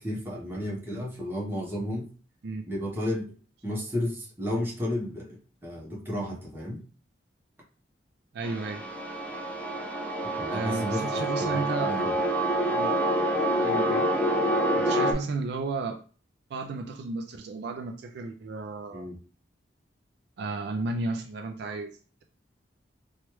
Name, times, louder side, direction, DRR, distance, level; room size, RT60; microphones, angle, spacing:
voice 1, 0.0-2.1 2.7-3.3 3.6-5.4 5.6-6.8 10.4-12.1 18.9-19.2, left 1 dB, 15° right, -4 dB, 0.9 m, -32 dB
voice 2, 8.3-8.8 10.5-12.0 12.7-12.9 13.6-14.1 14.7-16.0 16.5-19.1 20.4-22.2, right 3 dB, 65° right, 5 dB, 0.4 m, -33 dB
sound 1, 8.4-15.1, right 1 dB, 10° left, 0.4 m, -27 dB
3.1 x 2.3 x 3.0 m, 0.39 s
head